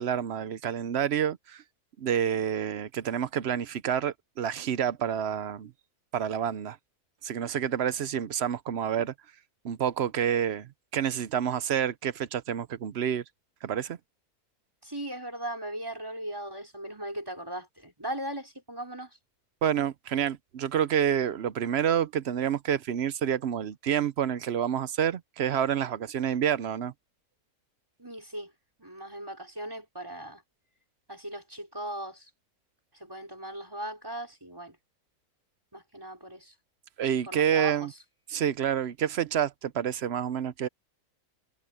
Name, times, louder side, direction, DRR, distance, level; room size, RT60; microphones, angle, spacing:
voice 1, 0.0-1.6 2.0-5.7 6.1-6.8 7.2-9.1 9.6-13.2 13.6-14.0 19.6-26.9 37.0-37.9 38.3-40.7, right 9 dB, 55° right, 0.8 m, -28 dB
voice 2, 14.8-19.2 28.0-28.5 28.8-30.4 31.1-32.3 32.9-34.8 35.7-36.5 37.3-37.9, right 1 dB, 15° right, 5.0 m, -38 dB
omnidirectional pair, 1.6 m